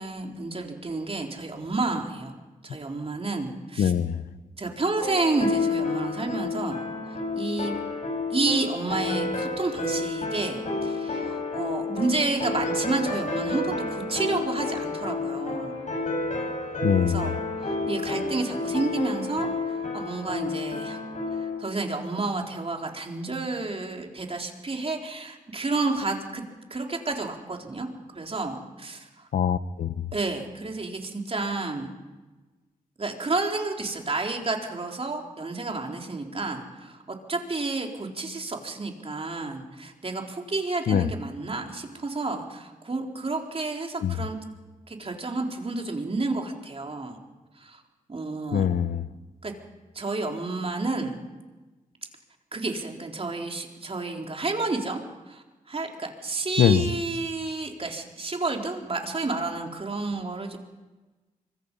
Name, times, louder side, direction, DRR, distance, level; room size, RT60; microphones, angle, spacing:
voice 1, 0.0-2.3 2.6-3.9 4.6-7.7 8.3-15.8 17.0-17.4 17.6-21.0 21.3-26.4 26.7-27.9 28.1-29.1 30.1-31.9 33.0-44.4 44.9-47.2 47.6-47.8 48.1-48.7 49.4-49.5 50.0-51.2 52.5-55.0 55.3-60.6, right 3 dB, 40° right, 4.0 m, -30 dB
voice 2, 3.8-4.2 16.8-17.4 29.3-30.1 40.9-41.1 44.0-44.2 48.5-49.1 56.6-56.9, left 9 dB, 85° left, 0.9 m, -23 dB
sound 1, 5.0-21.6, left 3 dB, 55° left, 6.5 m, -30 dB
25.5 x 23.5 x 5.5 m
cardioid pair, 50°, 15 cm